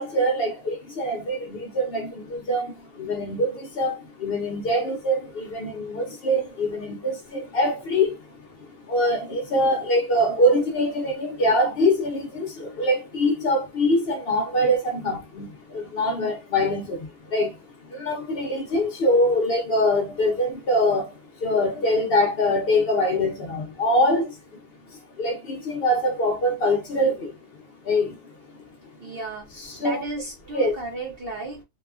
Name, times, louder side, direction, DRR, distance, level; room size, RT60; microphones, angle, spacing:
voice 1, 0.0-24.6 24.9-28.7 29.0-29.1 29.6-30.0 30.5-30.8, left 1 dB, 60° left, 0.6 m, -24 dB
voice 2, 29.0-31.6, right 2 dB, 65° right, 0.5 m, -34 dB
2.9 x 2.2 x 2.4 m
omnidirectional pair, 1.7 m